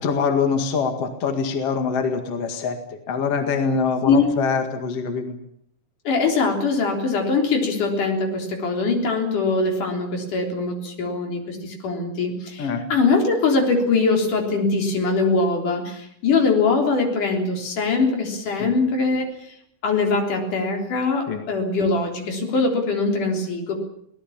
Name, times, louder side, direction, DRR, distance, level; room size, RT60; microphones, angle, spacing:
voice 1, 0.0-2.8 3.1-5.4 12.6-12.8 21.3-21.4, left 5 dB, 55° left, 6 dB, 2.8 m, -24 dB
voice 2, 6.0-19.5 19.8-23.8, left 4 dB, 85° left, 2 dB, 5.2 m, -22 dB
24.5 x 18.5 x 7.3 m, 0.71 s
omnidirectional pair, 3.6 m